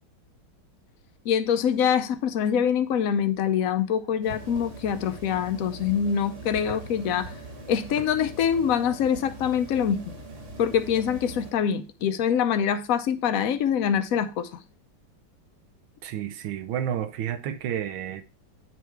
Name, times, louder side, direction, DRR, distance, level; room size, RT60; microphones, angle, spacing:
voice 1, 1.2-7.3 7.7-10.1 10.6-14.6, left 8 dB, 65° left, 0.8 m, -24 dB
sound 1, 4.2-11.5, right 2 dB, 40° right, 1.5 m, -41 dB
voice 2, 16.0-18.2, right 10 dB, 85° right, 1.5 m, -30 dB
9.3 x 3.4 x 4.5 m
omnidirectional pair, 2.1 m